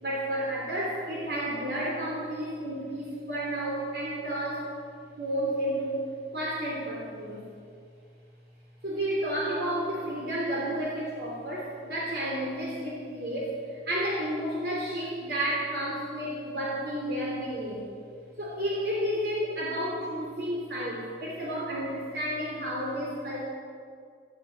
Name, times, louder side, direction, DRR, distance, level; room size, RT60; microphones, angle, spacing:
voice 1, 0.0-4.7 5.2-6.1 6.3-7.5 8.8-17.8 18.4-23.5, right 1 dB, 65° right, -4 dB, 3.2 m, -31 dB
13.0 x 11.5 x 8.1 m, 2.2 s
head